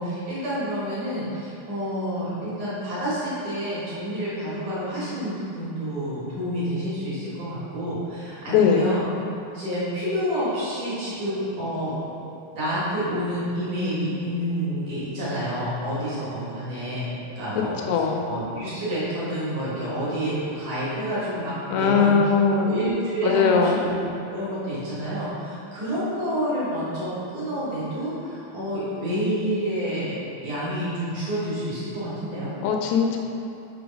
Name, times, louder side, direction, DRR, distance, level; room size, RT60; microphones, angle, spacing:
voice 1, 0.0-9.0 9.5-12.1 12.5-22.2 22.6-24.0 24.2-32.6, equal, 60° right, -9 dB, 2.2 m, -29 dB
voice 2, 8.5-8.9 17.6-18.2 21.7-22.7 23.2-23.8 32.6-33.2, left 5 dB, 80° left, 2 dB, 2.6 m, -20 dB
6.2 x 3.3 x 4.9 m, 2.7 s
omnidirectional pair, 4.8 m